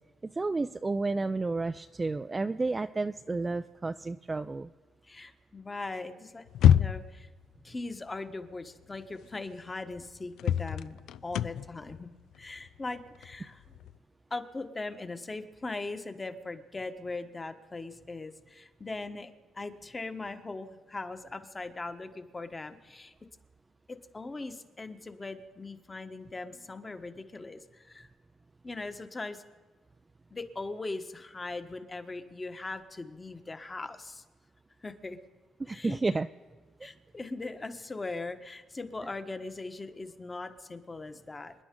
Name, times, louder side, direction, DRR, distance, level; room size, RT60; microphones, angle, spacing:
voice 1, 0.2-4.7 35.6-36.3, right 3 dB, 25° right, 10 dB, 0.4 m, -31 dB
voice 2, 5.1-6.4 6.7-7.3 7.6-11.0 11.2-12.1 12.4-13.6 14.3-23.1 23.9-28.1 28.6-29.4 30.3-34.2 34.8-35.2 35.6-36.0 36.8-41.5, left 3 dB, 25° left, 7 dB, 1.2 m, -40 dB
sound 1, 6.5-7.3 9.0-9.1 9.6-9.7 10.4-14.0, left 10 dB, 75° left, 0.3 m, -26 dB
27.0 x 10.0 x 3.8 m, 1.3 s
supercardioid pair, 70°, 0 cm